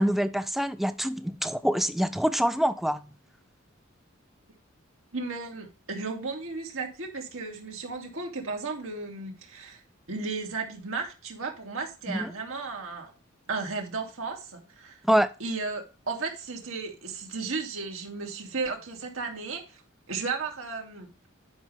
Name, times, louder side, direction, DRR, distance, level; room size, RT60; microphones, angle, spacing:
voice 1, 0.0-3.0 12.1-12.3 15.0-15.3, equal, ahead, 0.5 m, -25 dB
voice 2, 5.1-9.8 10.1-13.1 13.5-15.0 15.4-19.8 20.1-21.1, right 4 dB, 80° right, 2.4 m, -34 dB
10.5 x 5.4 x 3.4 m
head